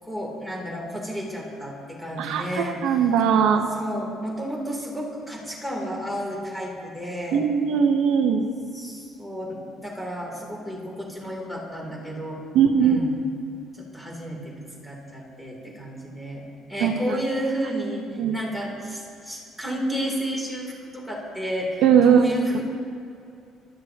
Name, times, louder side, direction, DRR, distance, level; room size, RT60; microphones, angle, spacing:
voice 1, 0.0-2.8 3.7-7.4 8.7-12.4 12.8-13.2 13.7-16.4 16.7-18.1 18.3-22.8, equal, ahead, -3 dB, 3.3 m, -32 dB
voice 2, 2.2-3.7 7.3-8.5 12.5-13.0 16.8-17.1 18.2-18.4 21.8-22.2, right 7 dB, 75° right, 2 dB, 1.0 m, -20 dB
24.0 x 14.0 x 3.0 m, 2.5 s
cardioid pair, 160°, 0 cm